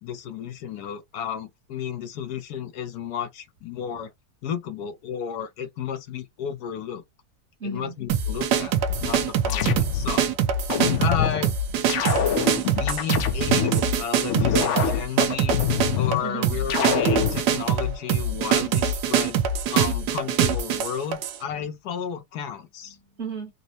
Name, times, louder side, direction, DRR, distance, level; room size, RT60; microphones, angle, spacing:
voice 1, 0.0-4.1 4.4-7.0 7.6-8.7 9.0-10.3 11.0-11.5 12.7-15.6 15.9-19.4 19.7-23.0, left 8 dB, 80° left, 1.2 m, -33 dB
voice 2, 7.6-8.0 11.2-11.9 16.2-16.6 22.8-23.5, right 3 dB, 50° right, 1.2 m, -36 dB
sound 1, 8.1-21.4, right 6 dB, 85° right, 1.2 m, -24 dB
sound 2, 8.9-10.2 10.7-11.4 11.9-13.8 14.3-16.2 16.7-17.4, left 8 dB, 65° left, 0.7 m, -25 dB
4.1 x 2.0 x 2.7 m
omnidirectional pair, 1.7 m